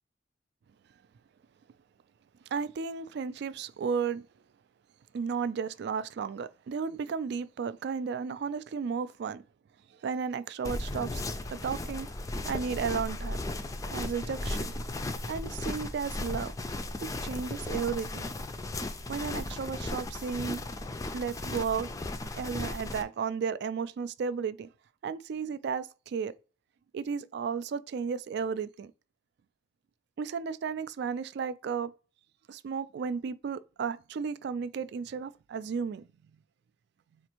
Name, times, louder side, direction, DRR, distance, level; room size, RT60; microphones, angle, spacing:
voice 1, 2.5-4.2 5.1-9.4 10.0-11.2 11.5-12.1 12.5-13.4 13.9-14.8 15.3-16.5 17.2-18.3 19.1-20.6 21.1-21.9 22.4-24.7 25.0-26.3 26.9-28.9 30.2-31.9 32.5-36.1, right 6 dB, 65° right, 0.3 m, -33 dB
sound 1, 10.6-23.0, left 2 dB, 20° left, 0.3 m, -36 dB
4.3 x 2.5 x 2.9 m
head